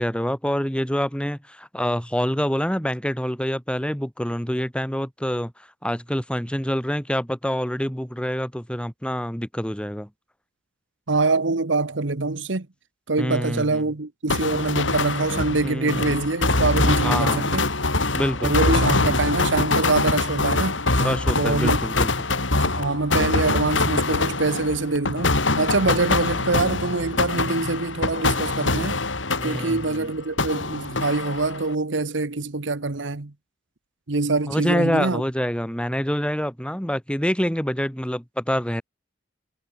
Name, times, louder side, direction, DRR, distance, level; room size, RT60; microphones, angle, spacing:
voice 1, 0.0-10.1 13.2-13.8 15.6-16.2 17.0-17.5 18.1-18.5 21.0-22.1 29.4-30.1 34.5-38.8, equal, 5° left, 5.7 m, -26 dB
voice 2, 11.1-12.7 13.1-17.7 18.4-20.8 21.4-21.8 22.6-29.0 29.4-33.3 34.1-35.2, right 3 dB, 75° right, 1.2 m, -24 dB
sound 1, 14.3-30.0 30.4-31.7, left 2 dB, 85° left, 5.3 m, -24 dB
head